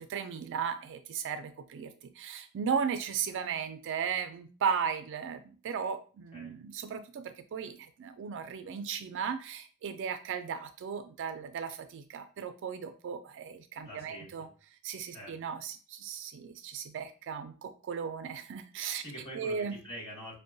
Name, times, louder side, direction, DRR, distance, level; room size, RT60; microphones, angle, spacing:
voice 1, 0.0-14.5 14.8-19.0 19.3-19.8, right 7 dB, 55° right, 9 dB, 0.3 m, -36 dB
voice 2, 13.8-14.5 15.1-15.3 19.0-20.3, equal, 25° left, -5 dB, 1.7 m, -45 dB
5.3 x 2.1 x 2.6 m, 0.38 s
head